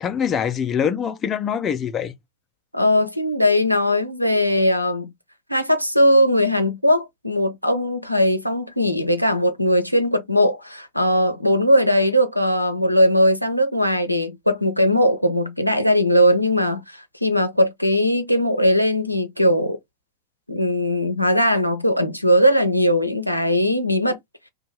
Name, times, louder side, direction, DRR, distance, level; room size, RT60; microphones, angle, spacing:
voice 1, 0.0-2.1, left 8 dB, 25° left, 0.5 m, -24 dB
voice 2, 2.7-5.1 5.5-19.8 20.5-24.2, equal, 90° left, 0.5 m, -19 dB
2.6 x 2.3 x 3.0 m
figure-of-eight pair, 90°, 0 cm